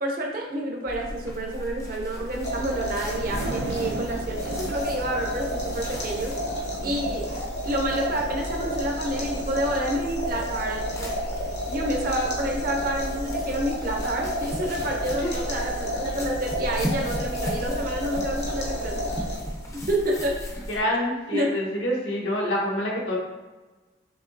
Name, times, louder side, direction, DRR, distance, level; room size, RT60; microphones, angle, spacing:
voice 1, 0.0-6.4 6.8-11.2 11.7-19.1 19.7-20.4 21.3-21.5, right 1 dB, 50° right, -1 dB, 0.7 m, -29 dB
sound 1, 0.9-20.8, equal, 15° left, 0.5 m, -36 dB
sound 2, 2.3-19.7, equal, 60° left, 1.0 m, -32 dB
Thunder, 2.3-13.6 14.1-14.4, right 3 dB, 80° right, 0.3 m, -41 dB
voice 2, 20.7-23.2, left 1 dB, 80° left, -3 dB, 1.1 m, -27 dB
6.0 x 2.8 x 2.6 m, 1.2 s
head